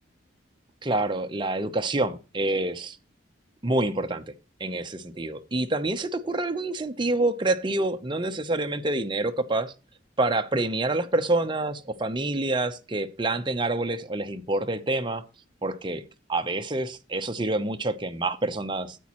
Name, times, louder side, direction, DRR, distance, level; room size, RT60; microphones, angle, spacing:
voice 1, 0.8-2.9 3.6-4.2 4.6-9.7 10.2-15.2 15.6-16.0 16.3-19.0, right 2 dB, 25° right, 0.7 m, -27 dB
12.5 x 8.4 x 3.0 m
head